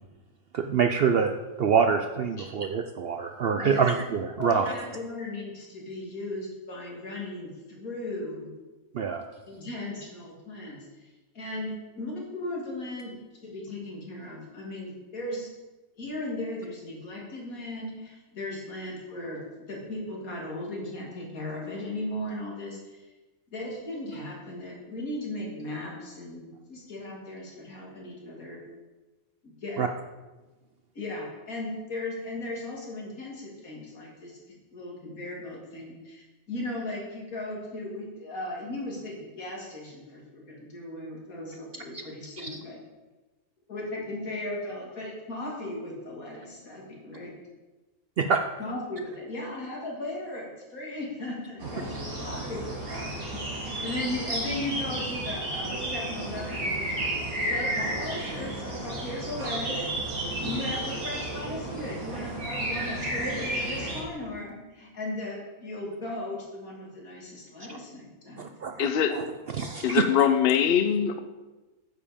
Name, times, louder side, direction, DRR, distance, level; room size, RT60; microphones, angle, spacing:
voice 1, 0.5-1.3 1.6-4.7 8.9-9.2 29.8-29.9 41.9-42.0 42.4-42.5 48.2-48.4 68.4-70.0, right 6 dB, 65° right, 6 dB, 0.6 m, -26 dB
voice 2, 4.4-8.5 9.5-11.1 11.3-13.2 13.4-15.5 16.0-19.4 19.7-23.1 23.5-26.4 26.7-28.6 29.4-29.8 30.9-34.4 34.7-42.8 43.7-47.3 48.6-57.1 57.5-59.9 60.4-68.8, left 1 dB, 75° left, -3 dB, 3.0 m, -37 dB
sound 1, 51.6-64.0, right 1 dB, 80° right, 2.5 m, -32 dB
voice 3, 68.8-69.1 69.8-71.2, left 8 dB, 55° left, 9 dB, 0.7 m, -22 dB
9.7 x 7.5 x 5.1 m, 1.2 s
omnidirectional pair, 1.5 m